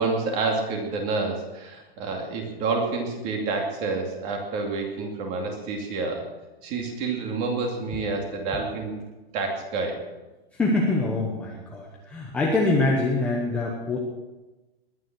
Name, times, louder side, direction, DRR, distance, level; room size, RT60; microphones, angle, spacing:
voice 1, 0.0-6.2 6.6-8.9 9.3-10.0, right 3 dB, 20° right, 2 dB, 2.5 m, -28 dB
voice 2, 10.5-14.0, left 2 dB, 5° left, -3 dB, 0.9 m, -24 dB
20.5 x 9.9 x 6.1 m, 1.1 s
hypercardioid pair, 175°, 31 cm